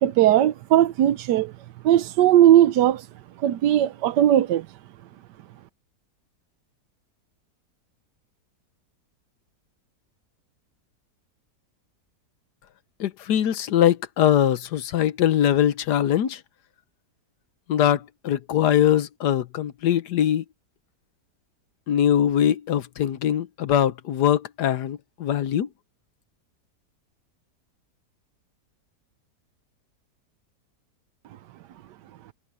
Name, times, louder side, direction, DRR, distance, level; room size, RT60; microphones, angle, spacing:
voice 1, 0.0-1.5 1.8-3.1 3.4-4.7, right 12 dB, 80° right, 1.3 m, -18 dB
voice 2, 13.0-16.4 17.7-20.4 21.9-25.7, left 10 dB, 75° left, 1.5 m, -22 dB
omnidirectional pair, 1.8 m